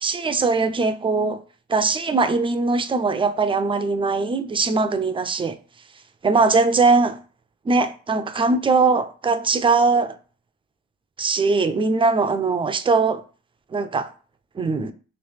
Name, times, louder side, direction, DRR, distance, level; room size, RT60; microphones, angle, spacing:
voice 1, 0.0-1.4 1.7-5.6 6.2-7.2 7.7-10.2 11.2-13.2 13.7-14.1 14.6-14.9, right 4 dB, 20° right, 0.3 m, -20 dB
3.0 x 2.9 x 3.2 m
cardioid pair, 90°, 30 cm